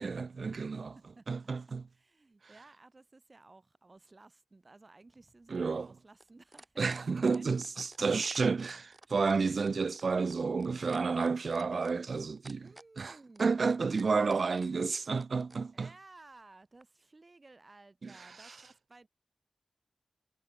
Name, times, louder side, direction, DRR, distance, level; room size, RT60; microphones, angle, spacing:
voice 1, 0.0-1.0 1.3-1.8 5.5-5.9 6.8-8.8 9.1-12.6 13.0-15.9 18.0-18.1, right 4 dB, 75° right, 0.3 m, -31 dB
voice 2, 0.7-1.3 1.9-6.8 7.3-7.4 7.7-7.8 9.0-9.1 12.6-13.6 15.7-19.1, right 3 dB, 45° right, 4.2 m, -57 dB
sound 1, 5.1-15.6 16.8-16.9, right 2 dB, 25° right, 2.2 m, -55 dB
cardioid pair, 55°, 0 cm